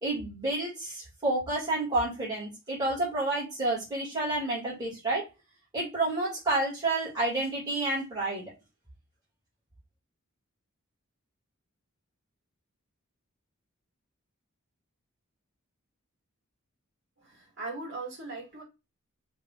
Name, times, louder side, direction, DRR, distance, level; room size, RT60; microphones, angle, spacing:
voice 1, 0.0-5.2 5.7-8.5, right 2 dB, 20° right, 1.7 m, -29 dB
voice 2, 17.2-18.6, right 3 dB, 55° right, 1.9 m, -39 dB
3.5 x 2.6 x 3.6 m
head